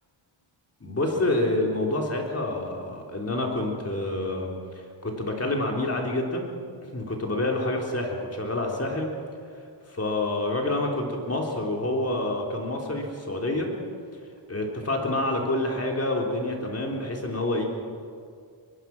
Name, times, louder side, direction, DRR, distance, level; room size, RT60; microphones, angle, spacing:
voice 1, 0.8-6.5 6.9-9.1 9.9-13.7 14.5-17.6, left 1 dB, 30° left, 0 dB, 3.7 m, -28 dB
24.0 x 20.5 x 6.1 m, 2.2 s
wide cardioid pair, 115°, 48 cm